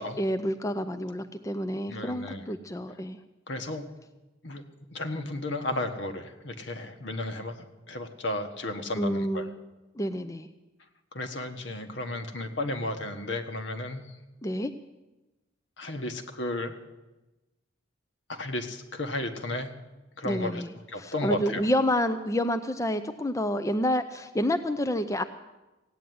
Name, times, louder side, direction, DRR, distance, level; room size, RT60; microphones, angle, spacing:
voice 1, 0.2-3.2 9.0-9.5 9.9-10.5 14.4-14.7 20.2-20.7 21.0-25.2, equal, 15° left, 8 dB, 0.5 m, -28 dB
voice 2, 1.9-2.4 3.5-3.9 4.4-4.6 4.9-9.4 11.1-14.0 15.8-16.8 18.3-19.7 20.2-20.6 20.9-21.6, left 1 dB, 65° left, 6 dB, 1.4 m, -33 dB
16.0 x 9.4 x 9.4 m, 1.1 s
head